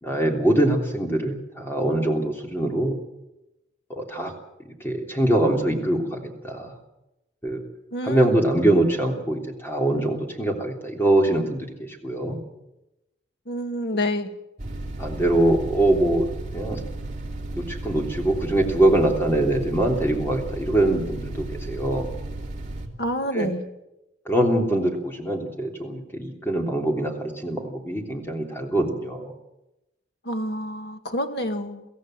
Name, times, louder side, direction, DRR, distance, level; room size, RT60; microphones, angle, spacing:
voice 1, 0.0-2.9 3.9-4.3 4.8-6.8 7.4-7.6 8.0-12.4 15.0-16.3 16.5-16.8 17.5-22.1 23.3-23.5 24.2-29.3, right 1 dB, 10° left, 1 dB, 3.2 m, -23 dB
voice 2, 7.9-8.4 13.5-14.3 23.0-23.6 30.2-31.9, equal, 60° left, 6 dB, 2.0 m, -28 dB
sound 1, 14.6-22.9, right 2 dB, 40° right, 2.9 m, -34 dB
23.5 x 16.0 x 7.7 m, 0.93 s
head